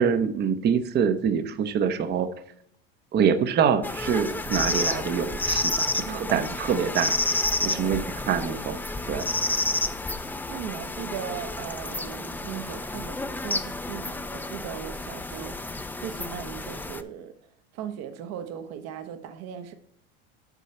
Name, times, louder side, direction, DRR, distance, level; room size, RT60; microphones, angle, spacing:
voice 1, 0.0-2.3 3.1-7.2 7.6-8.8 9.1-9.3, right 7 dB, 35° right, 0.8 m, -25 dB
sound 1, 3.8-17.0, left 2 dB, 5° left, 0.5 m, -30 dB
voice 2, 6.0-6.4 7.6-7.8 10.5-15.6 16.0-17.3 17.7-19.7, right 9 dB, 55° right, 1.0 m, -38 dB
8.2 x 5.6 x 4.2 m
supercardioid pair, 100°, 31 cm